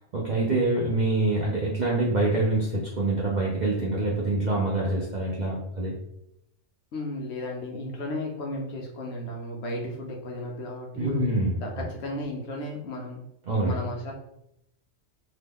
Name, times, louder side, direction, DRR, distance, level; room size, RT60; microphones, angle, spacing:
voice 1, 0.1-6.0 11.0-11.6 13.5-13.7, right 2 dB, 60° right, -4 dB, 0.5 m, -25 dB
voice 2, 6.9-11.3 11.6-13.2 13.6-14.1, left 1 dB, 65° left, 0 dB, 0.8 m, -34 dB
2.8 x 2.2 x 3.4 m, 0.80 s
omnidirectional pair, 1.3 m